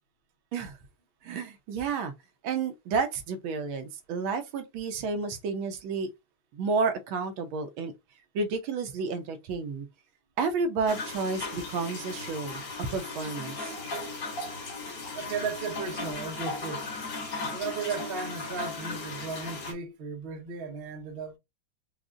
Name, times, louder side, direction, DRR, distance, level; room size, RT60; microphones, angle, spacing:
voice 1, 1.2-2.1 2.4-6.1 6.5-7.9 8.3-9.9 10.4-13.8, right 4 dB, 75° right, 1.4 m, -31 dB
sound 1, 10.9-19.7, left 3 dB, 60° left, 2.2 m, -37 dB
voice 2, 15.1-16.9 17.5-21.4, right 5 dB, 45° right, 0.7 m, -35 dB
4.9 x 2.4 x 2.4 m
omnidirectional pair, 2.3 m